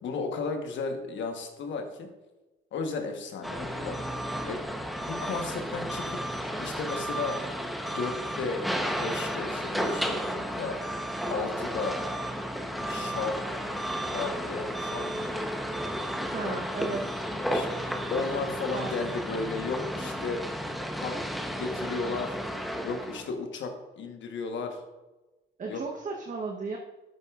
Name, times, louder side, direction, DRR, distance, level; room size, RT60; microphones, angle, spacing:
voice 1, 0.0-2.1 2.7-4.0 4.4-4.7 5.1-6.2 6.6-7.4 7.8-8.6 9.0-10.8 11.3-12.0 12.7-13.4 13.7-15.5 16.4-16.6 17.3-20.4 21.0-21.2 21.6-22.4 22.8-24.8 25.7-25.8, left 4 dB, 70° left, 5 dB, 1.1 m, -34 dB
sound 1, 3.4-23.3, equal, ahead, 0.8 m, -33 dB
voice 2, 16.3-17.1 18.7-19.2 25.6-26.8, right 4 dB, 40° right, 1 dB, 0.9 m, -35 dB
9.5 x 8.0 x 2.4 m, 1.1 s
cardioid pair, 90°, 20 cm